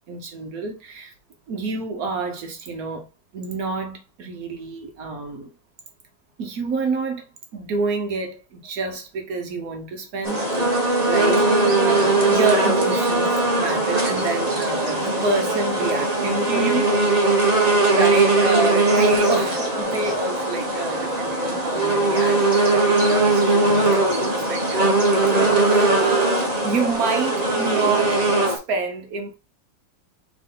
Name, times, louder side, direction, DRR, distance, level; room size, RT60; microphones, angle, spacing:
voice 1, 0.1-1.1 1.5-3.1 3.3-5.5 6.4-7.3 7.5-17.0 17.3-17.4 17.8-26.4 26.6-28.2 28.5-29.4, right 4 dB, 65° right, 0.9 m, -28 dB
sound 1, 10.2-28.6, right 2 dB, 45° right, 0.5 m, -20 dB
4.7 x 3.0 x 3.7 m
omnidirectional pair, 2.4 m